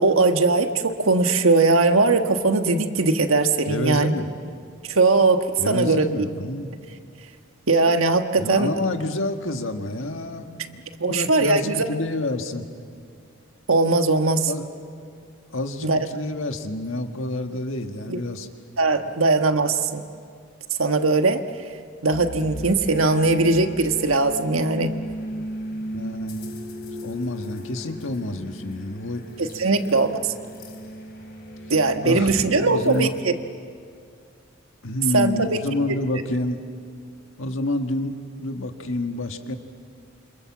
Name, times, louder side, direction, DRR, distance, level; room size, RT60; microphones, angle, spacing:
voice 1, 0.0-4.1 4.9-6.1 7.7-8.7 11.0-11.9 13.7-14.5 15.8-16.1 18.1-18.2 18.8-20.0 20.8-21.4 22.0-24.9 29.4-30.2 31.7-33.3 35.1-35.6, right 3 dB, 80° right, 7 dB, 1.4 m, -20 dB
voice 2, 3.7-4.4 5.6-6.7 8.4-12.7 14.5-14.7 15.5-18.5 19.0-19.1 25.9-26.5 27.0-29.3 32.0-33.1 34.8-36.6 37.4-39.6, left 1 dB, 70° left, 6 dB, 1.7 m, -28 dB
sound 1, 22.1-33.2, equal, 50° left, 2.9 m, -36 dB
28.0 x 26.5 x 7.4 m, 2.3 s
head